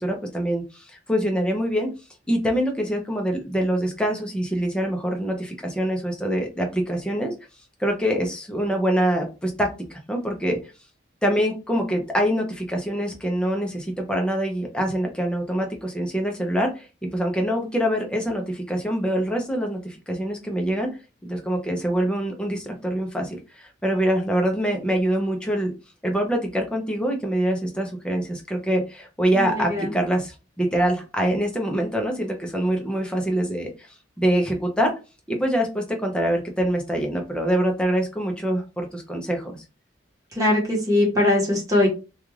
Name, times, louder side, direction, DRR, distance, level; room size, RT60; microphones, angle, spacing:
voice 1, 0.0-1.9 2.3-7.3 7.8-10.6 11.2-16.9 17.1-21.0 21.2-25.7 26.0-33.9 34.2-34.9 35.3-39.6, equal, 5° left, 1 dB, 0.5 m, -25 dB
voice 2, 29.4-29.9 40.4-41.9, left 1 dB, 20° right, -2 dB, 1.0 m, -21 dB
2.4 x 2.3 x 3.1 m, 0.31 s
head